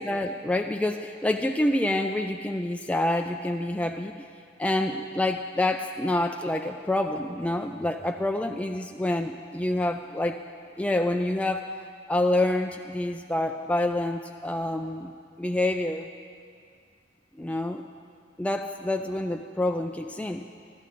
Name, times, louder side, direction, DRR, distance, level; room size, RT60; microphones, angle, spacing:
voice 1, 0.0-4.1 4.6-10.4 10.8-11.7 12.1-15.1 15.4-16.1 17.4-17.8 18.4-20.5, left 1 dB, 5° left, 4 dB, 0.3 m, -27 dB
14.5 x 13.5 x 4.1 m, 2.2 s
head